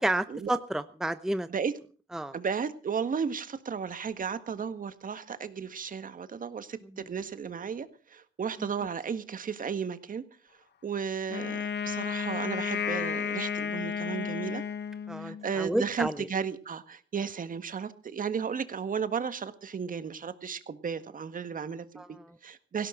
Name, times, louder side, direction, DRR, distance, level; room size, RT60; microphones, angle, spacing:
voice 1, 0.0-1.5 2.1-2.3 8.6-8.7 15.1-16.3 22.0-22.4, right 1 dB, ahead, 11 dB, 0.8 m, -31 dB
voice 2, 2.3-10.2 10.8-14.6 15.2-22.9, right 6 dB, 45° right, 11 dB, 1.7 m, -34 dB
Wind instrument woodwind instrument, 11.3-15.5, left 6 dB, 60° left, 1.2 m, -33 dB
18.0 x 16.5 x 3.9 m, 0.39 s
cardioid pair, 90°, 20 cm